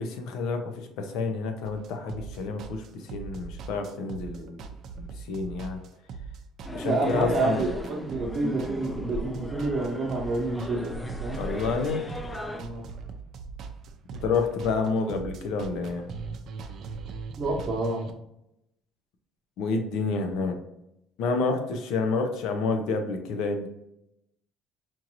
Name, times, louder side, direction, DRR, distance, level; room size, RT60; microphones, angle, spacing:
voice 1, 0.0-4.6 5.0-5.8 6.7-7.6 11.4-12.1 14.2-16.1 19.6-20.6 21.2-23.7, left 4 dB, 75° left, 5 dB, 0.7 m, -29 dB
sound 1, 1.6-18.1, right 5 dB, 55° right, 0.4 m, -40 dB
sound 2, 6.6-12.6, left 1 dB, 10° left, 0.3 m, -37 dB
voice 2, 6.8-11.4 12.5-12.8 17.3-18.0, right 2 dB, 35° right, -4 dB, 0.8 m, -29 dB
4.5 x 2.5 x 2.9 m, 0.83 s
cardioid pair, 145°, 0 cm